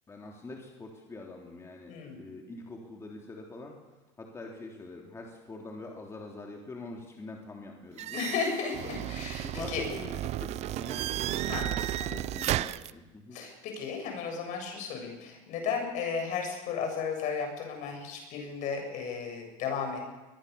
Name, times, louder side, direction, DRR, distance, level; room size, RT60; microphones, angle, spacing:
voice 1, 0.1-3.8 4.2-8.3 9.4-13.4, left 2 dB, 20° left, 0 dB, 3.2 m, -45 dB
voice 2, 1.9-2.2 8.1-9.8 11.4-12.2 13.3-20.0, left 5 dB, 55° left, 3 dB, 7.8 m, -34 dB
sound 1, 8.0-12.9, right 14 dB, 45° right, 0.7 m, -33 dB
22.5 x 21.5 x 7.0 m, 1.1 s
supercardioid pair, 115°, 15 cm